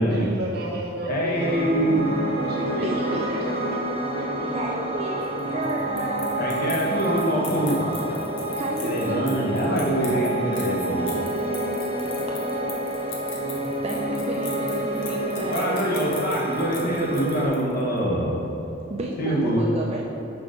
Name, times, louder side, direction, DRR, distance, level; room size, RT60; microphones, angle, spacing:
voice 1, 0.1-1.5 2.4-3.8 4.1-5.6, equal, 55° right, -5 dB, 1.4 m, -34 dB
voice 2, 1.1-2.2 6.4-8.2 8.8-11.1 15.5-18.4 19.2-19.6, equal, 50° left, -4 dB, 1.3 m, -24 dB
Piano, 1.3-17.5, right 1 dB, 30° left, 1.3 m, -28 dB
voice 3, 2.8-3.3 4.5-6.4 8.5-10.1 13.8-15.9 18.9-20.0, right 1 dB, 30° right, -2 dB, 0.5 m, -32 dB
sound 1, 5.2-17.8, left 4 dB, 70° left, 1.2 m, -40 dB
6.2 x 4.7 x 5.1 m, 3.0 s
head